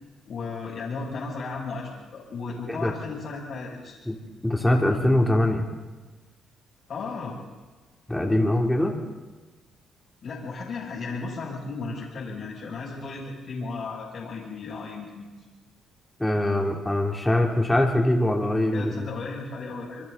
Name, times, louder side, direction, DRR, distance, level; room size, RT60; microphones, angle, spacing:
voice 1, 0.3-4.0 6.9-7.3 10.2-15.3 18.7-20.1, left 4 dB, 60° left, -7 dB, 6.5 m, -35 dB
voice 2, 4.4-5.6 8.1-8.9 16.2-19.1, left 1 dB, 10° left, 1 dB, 3.2 m, -23 dB
27.5 x 24.0 x 4.1 m, 1.3 s
cardioid pair, 90°, 0 cm